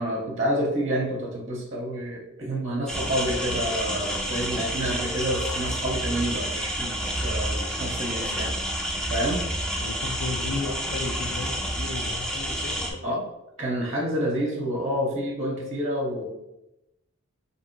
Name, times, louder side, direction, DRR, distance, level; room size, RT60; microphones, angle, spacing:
voice 1, 0.0-8.5 9.1-9.5 13.0-13.2 13.6-16.2, equal, 30° right, -2 dB, 0.7 m, -28 dB
sound 1, 2.9-12.9, equal, 5° left, 0.5 m, -29 dB
voice 2, 9.8-11.5 11.8-13.3, left 3 dB, 85° left, 7 dB, 0.5 m, -34 dB
3.5 x 2.8 x 4.4 m, 0.91 s
head